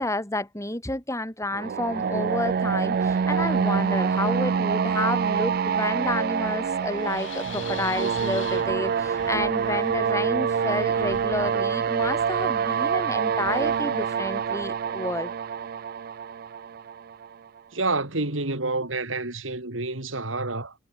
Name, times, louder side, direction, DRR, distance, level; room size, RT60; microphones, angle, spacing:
voice 1, 0.0-15.3, left 2 dB, 15° left, 5.0 m, -30 dB
sound 1, 1.5-17.3, right 6 dB, 50° right, 0.4 m, -26 dB
Wind, 5.0-15.0, left 7 dB, 75° left, 4.0 m, -46 dB
voice 2, 17.7-20.7, right 3 dB, 90° right, 3.6 m, -28 dB
head